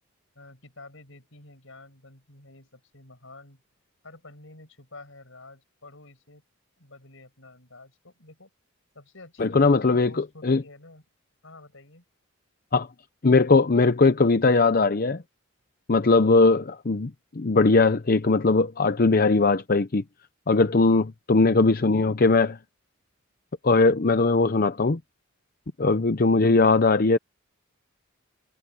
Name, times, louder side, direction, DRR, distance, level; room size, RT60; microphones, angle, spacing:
voice 1, 0.3-3.6 4.0-6.4 6.8-8.5 8.9-11.0 11.4-12.0 20.9-21.2, left 2 dB, 70° left, 6.2 m, -49 dB
voice 2, 9.4-10.6 12.7-12.9 13.2-15.2 15.9-20.0 20.5-22.6 23.6-25.0 25.8-27.2, left 3 dB, 45° left, 0.7 m, -20 dB
head